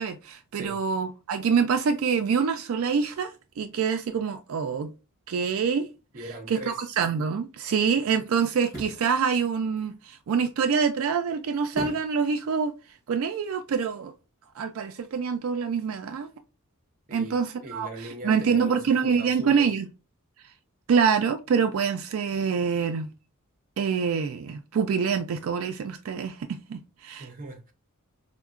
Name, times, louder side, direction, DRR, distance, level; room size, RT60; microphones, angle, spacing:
voice 1, 0.0-4.9 5.3-5.9 6.5-12.7 13.1-14.1 14.6-16.3 17.1-19.9 20.9-23.1 23.8-27.3, right 6 dB, 70° right, 0.3 m, -26 dB
voice 2, 6.1-6.9 17.1-17.4 17.6-19.7 27.1-27.7, right 1 dB, 40° right, 0.7 m, -40 dB
sound 1, 6.9-7.0 8.6-9.1 11.7-12.2 12.6-12.7, right 1 dB, 15° right, 1.3 m, -37 dB
4.5 x 2.1 x 2.4 m
head